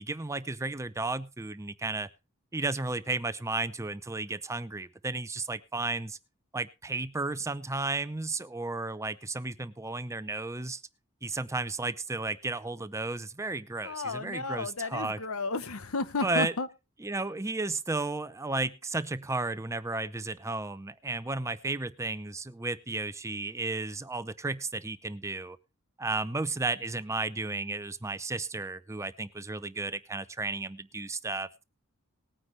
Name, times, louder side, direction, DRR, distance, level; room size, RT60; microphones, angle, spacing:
voice 1, 0.0-2.1 2.5-6.2 6.5-10.8 11.2-15.2 16.2-16.5 17.0-25.6 26.0-31.6, right 3 dB, 15° right, 14 dB, 0.6 m, -33 dB
voice 2, 13.8-16.7, left 3 dB, 85° left, 14 dB, 1.0 m, -33 dB
19.5 x 9.5 x 3.2 m, 0.28 s
head